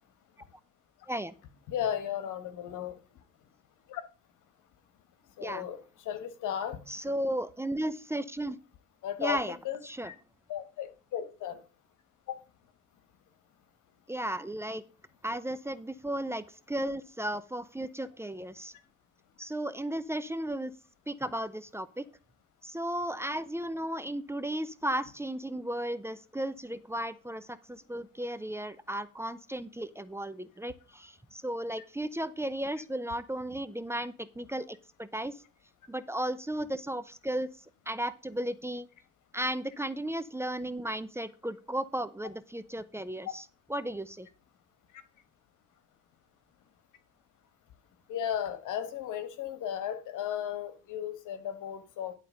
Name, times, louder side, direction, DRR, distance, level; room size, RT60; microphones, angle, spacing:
voice 1, 1.7-3.0 3.9-4.0 5.4-5.8 6.0-6.8 9.0-9.8 10.0-10.2 10.5-11.6 12.3-12.4 48.1-52.1, left 10 dB, 85° left, 1.5 m, -35 dB
voice 2, 6.9-8.6 9.2-9.6 9.8-10.1 14.1-14.8 15.2-18.7 19.4-20.7 21.1-22.1 22.6-35.3 35.9-37.5 37.9-38.9 39.3-44.3, right 1 dB, 10° right, 0.7 m, -35 dB
11.0 x 4.2 x 6.3 m
cardioid pair, 90°, 30 cm